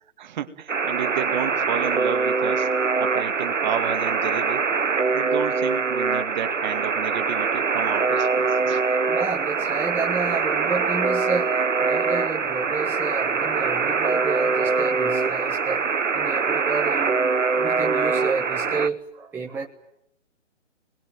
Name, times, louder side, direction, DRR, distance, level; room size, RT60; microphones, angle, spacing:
voice 1, 0.2-2.7 3.0-4.7 5.1-8.8, right 9 dB, 40° right, 8 dB, 2.0 m, -31 dB
Alarm, 0.7-18.9, right 4 dB, 85° right, 1.1 m, -23 dB
voice 2, 9.1-11.5 11.8-15.8 16.1-19.7, right 4 dB, 5° right, -1 dB, 1.3 m, -30 dB
30.0 x 21.5 x 9.2 m, 0.81 s
figure-of-eight pair, 140°, 37 cm